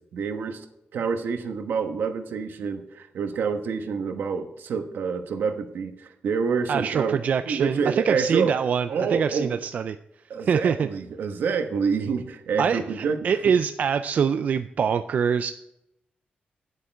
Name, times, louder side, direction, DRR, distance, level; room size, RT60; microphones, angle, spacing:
voice 1, 0.1-0.6 0.9-7.2 7.4-8.5 8.9-9.6 10.3-13.2 13.4-13.5, right 5 dB, 75° right, 7 dB, 1.1 m, -27 dB
voice 2, 6.7-10.0 10.4-10.9 12.6-15.5, right 7 dB, 50° right, 10 dB, 0.3 m, -24 dB
10.0 x 8.2 x 4.6 m, 0.83 s
wide cardioid pair, 170°, 3 cm